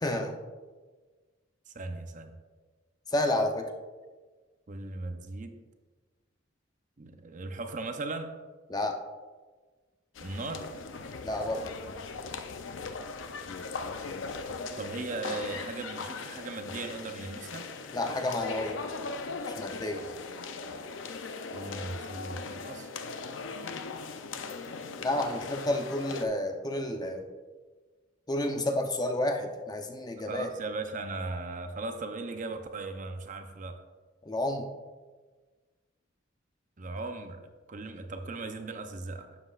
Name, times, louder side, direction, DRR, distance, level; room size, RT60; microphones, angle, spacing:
voice 1, 0.0-0.3 3.1-3.7 8.7-9.0 11.2-11.6 17.9-18.8 19.5-20.0 25.0-27.2 28.3-30.5 34.2-34.6, left 1 dB, 20° left, 4 dB, 0.7 m, -30 dB
voice 2, 1.7-2.4 4.7-5.6 7.0-8.3 10.2-10.7 14.5-17.7 21.5-22.9 30.3-33.8 36.8-37.4 37.7-39.4, right 3 dB, 40° right, 6 dB, 0.7 m, -38 dB
sound 1, 10.1-26.2, left 4 dB, 85° left, 0.6 m, -39 dB
11.5 x 7.7 x 2.4 m, 1.4 s
head